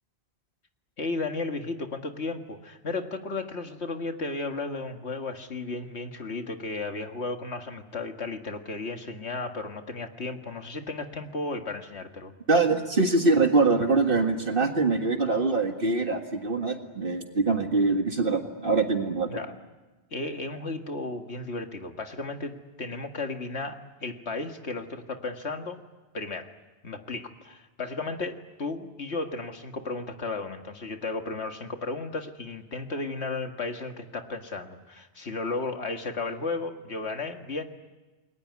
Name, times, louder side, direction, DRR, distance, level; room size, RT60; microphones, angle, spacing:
voice 1, 1.0-12.3 19.3-19.6 20.1-25.8 26.1-26.5 26.8-37.6, left 3 dB, 90° left, 5 dB, 2.2 m, -34 dB
voice 2, 12.5-19.3, right 3 dB, 55° right, 4 dB, 2.0 m, -24 dB
29.0 x 21.0 x 9.5 m, 1.2 s
omnidirectional pair, 1.1 m